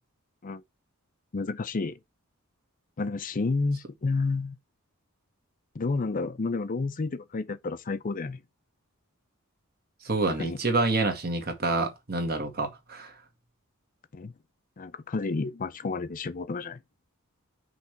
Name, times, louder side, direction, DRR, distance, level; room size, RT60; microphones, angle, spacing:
voice 1, 1.3-2.0 3.0-4.6 5.7-8.4 10.4-10.6 14.1-14.3 14.8-16.8, left 3 dB, 40° left, 0.5 m, -30 dB
voice 2, 10.0-13.1, right 3 dB, 50° right, 1.7 m, -27 dB
5.8 x 3.3 x 5.8 m
head